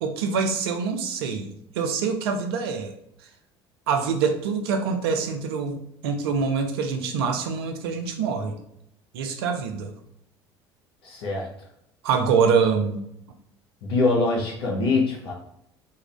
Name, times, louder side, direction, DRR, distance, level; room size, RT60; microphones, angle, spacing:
voice 1, 0.0-2.9 3.9-8.6 9.1-9.9 12.0-13.0, right 5 dB, 65° right, 5 dB, 0.4 m, -25 dB
voice 2, 11.0-11.5 13.8-15.3, left 3 dB, 70° left, -1 dB, 0.8 m, -23 dB
2.6 x 2.5 x 2.9 m, 0.76 s
figure-of-eight pair, 60°, 14 cm